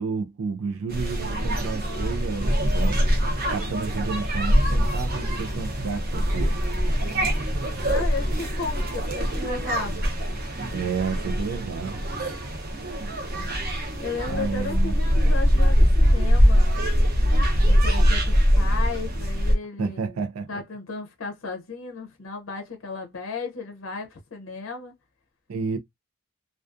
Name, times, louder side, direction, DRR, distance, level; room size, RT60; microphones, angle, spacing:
voice 1, 0.0-3.0 3.5-6.6 10.7-12.0 14.3-15.0 19.8-20.6 25.5-25.8, right 5 dB, 90° right, 0.4 m, -31 dB
sound 1, 0.9-19.6, equal, 45° right, 0.7 m, -23 dB
voice 2, 7.8-10.1 14.0-16.7 17.7-20.2 20.5-24.9, left 4 dB, 65° left, 0.6 m, -34 dB
2.4 x 2.3 x 2.4 m
head